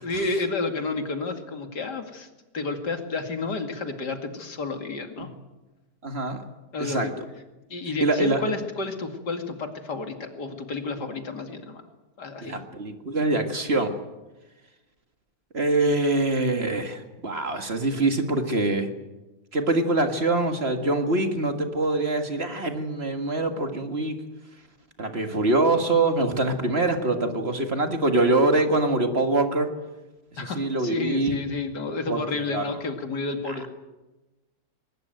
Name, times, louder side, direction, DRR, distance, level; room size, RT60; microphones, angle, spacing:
voice 1, 0.0-2.3 2.5-5.3 6.7-7.1 7.7-11.8 12.2-12.6 30.4-33.7, left 3 dB, 75° left, 6 dB, 2.8 m, -31 dB
voice 2, 6.0-6.4 6.8-7.1 8.0-8.4 12.4-13.9 15.5-18.9 19.5-24.2 25.0-29.7 30.4-31.4 32.1-32.6, right 2 dB, 35° right, 6 dB, 2.0 m, -24 dB
21.5 x 20.0 x 9.3 m, 1.1 s
omnidirectional pair, 1.8 m